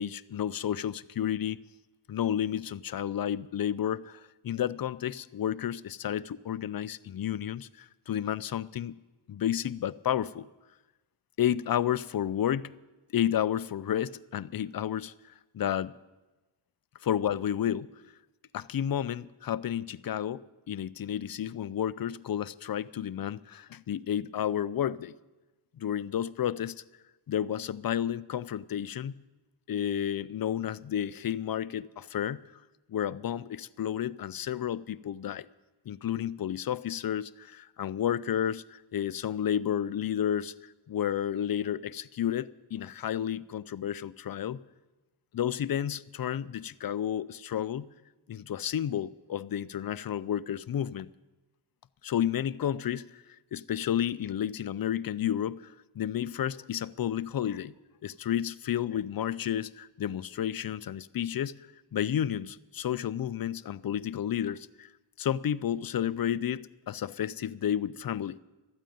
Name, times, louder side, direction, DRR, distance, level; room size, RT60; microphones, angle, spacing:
voice 1, 0.0-1.6 2.1-9.0 9.3-10.5 11.4-12.7 13.1-15.1 15.5-15.9 17.0-17.9 18.5-25.1 25.8-26.8 27.3-29.1 29.7-32.4 32.9-35.5 35.9-44.6 45.3-47.9 48.3-51.1 52.0-53.2 53.5-57.7 58.0-61.6 61.9-64.9 65.2-68.4, left 10 dB, 50° left, 0.5 m, -31 dB
13.0 x 9.0 x 9.2 m
wide cardioid pair, 70°, 49 cm